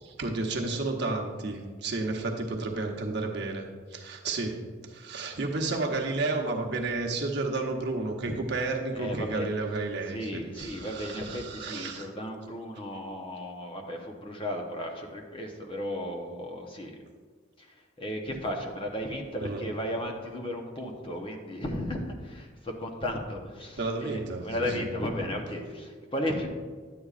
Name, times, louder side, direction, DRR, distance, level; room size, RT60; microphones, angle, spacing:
voice 1, 0.0-3.6 3.9-12.1 19.4-19.6 23.8-24.9, right 3 dB, 60° right, 1 dB, 0.9 m, -32 dB
voice 2, 8.9-9.5 10.1-17.0 17.6-26.5, equal, 25° left, 2 dB, 0.8 m, -35 dB
10.0 x 8.2 x 2.4 m, 1.5 s
head